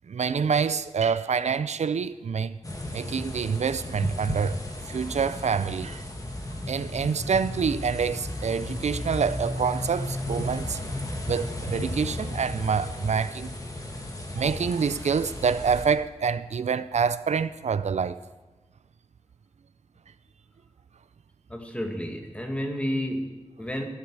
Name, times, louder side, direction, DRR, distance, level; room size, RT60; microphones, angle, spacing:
voice 1, 0.1-2.6 2.9-4.6 4.9-6.1 6.7-11.0 11.2-13.5 14.3-18.2, right 6 dB, 90° right, 0.5 m, -26 dB
sound 1, 2.6-15.9, left 1 dB, 30° left, 2.0 m, -34 dB
voice 2, 21.5-23.8, equal, 10° left, 2.1 m, -31 dB
16.5 x 12.0 x 4.8 m
wide cardioid pair, 90°, 11 cm